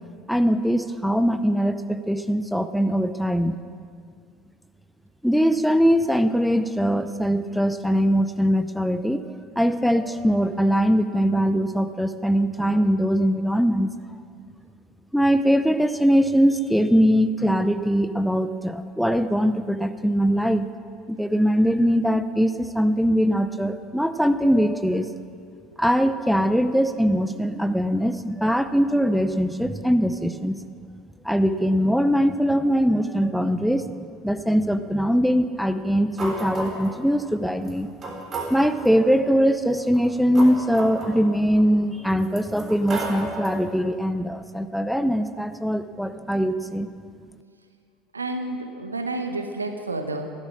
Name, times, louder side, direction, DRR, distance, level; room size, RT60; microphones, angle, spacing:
voice 1, 0.3-3.5 5.2-9.3 9.6-13.9 15.1-20.7 21.1-25.1 25.8-30.6 31.2-37.9 38.5-46.9, equal, ahead, 10 dB, 0.7 m, -21 dB
sound 1, 36.2-37.0 37.6-37.7 38.0-39.0 39.8-41.6 42.2-43.7, right 2 dB, 30° right, 3.7 m, -34 dB
voice 2, 48.1-50.4, right 2 dB, 85° right, 7 dB, 1.0 m, -30 dB
14.0 x 12.5 x 6.1 m, 2.3 s
figure-of-eight pair, 65°, 0 cm